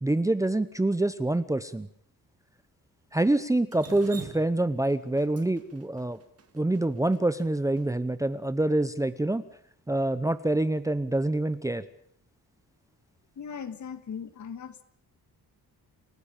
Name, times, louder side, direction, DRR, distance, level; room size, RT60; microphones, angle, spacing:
voice 1, 0.0-1.9 3.1-6.2 6.5-9.4 9.9-11.8, right 2 dB, 10° right, 0.8 m, -26 dB
Drip, 3.7-7.8, right 5 dB, 40° right, 2.5 m, -46 dB
voice 2, 13.4-14.8, left 7 dB, 50° left, 1.9 m, -38 dB
28.5 x 15.0 x 7.2 m
wide cardioid pair, 150°, 36 cm